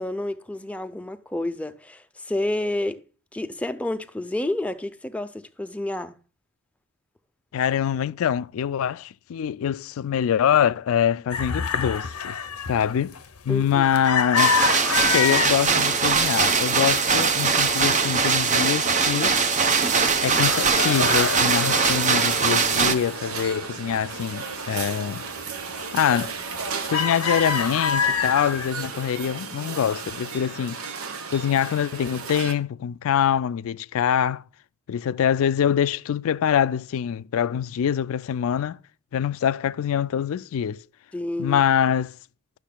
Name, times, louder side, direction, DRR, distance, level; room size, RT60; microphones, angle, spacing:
voice 1, 0.0-3.0 3.3-6.2 13.5-13.9 41.1-41.6, left 1 dB, 5° left, 0.5 m, -29 dB
voice 2, 7.5-12.3 12.7-13.2 13.5-14.6 15.1-19.4 20.2-25.2 25.9-26.3 26.9-30.8 31.3-34.4 34.9-38.8 39.1-40.8 41.4-42.2, left 8 dB, 65° left, 0.3 m, -24 dB
sound 1, 11.3-15.6 16.1-16.6 16.9-18.3 18.7-18.8 19.1-20.1 20.4-23.2 23.5-24.6 25.1-25.3 25.8-26.1 26.5-28.7, left 6 dB, 90° left, 0.7 m, -27 dB
sound 2, 14.4-22.9, right 5 dB, 35° right, 0.7 m, -21 dB
sound 3, 19.8-32.5, right 5 dB, 70° right, 0.9 m, -35 dB
11.5 x 6.5 x 2.2 m
head